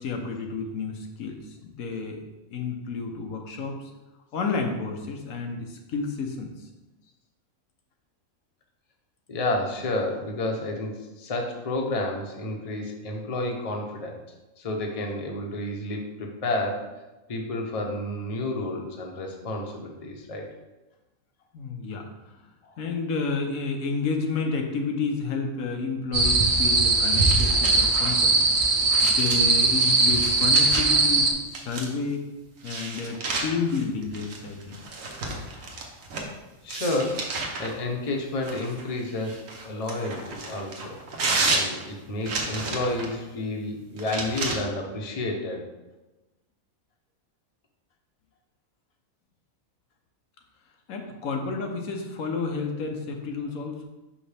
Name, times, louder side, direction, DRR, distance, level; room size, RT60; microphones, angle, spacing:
voice 1, 0.0-3.9 4.3-6.5 21.5-22.4 22.8-28.4 29.0-32.2 32.6-34.8 50.9-53.8, left 4 dB, 90° left, 3 dB, 1.3 m, -31 dB
voice 2, 9.3-14.2 14.6-17.0 17.3-20.5 22.6-22.7 36.6-41.0 41.5-45.7, left 2 dB, 30° left, 1 dB, 0.8 m, -30 dB
sound 1, 26.1-31.3, right 3 dB, 45° right, 0.8 m, -20 dB
sound 2, 27.0-31.1 31.5-32.1 32.6-36.3 36.7-37.7 38.4-43.2 44.0-44.5, right 3 dB, 75° right, 1.3 m, -32 dB
5.9 x 5.1 x 3.4 m, 1.1 s
omnidirectional pair, 1.4 m